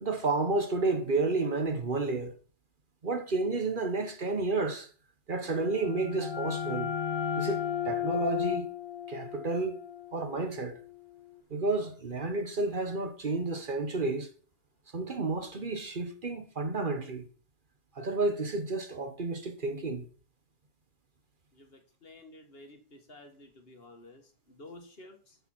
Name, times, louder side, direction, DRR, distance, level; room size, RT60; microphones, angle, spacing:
voice 1, 0.0-2.3 3.0-4.9 5.3-6.9 7.4-7.6 7.8-8.7 9.1-9.8 10.1-10.8 11.5-14.3 14.9-17.3 18.0-20.1, right 3 dB, 45° right, 1.2 m, -31 dB
sound 1, 5.5-11.0, left 9 dB, 25° left, 1.1 m, -34 dB
voice 2, 21.5-25.4, left 2 dB, 55° left, 1.8 m, -52 dB
11.0 x 6.8 x 4.4 m
omnidirectional pair, 1.2 m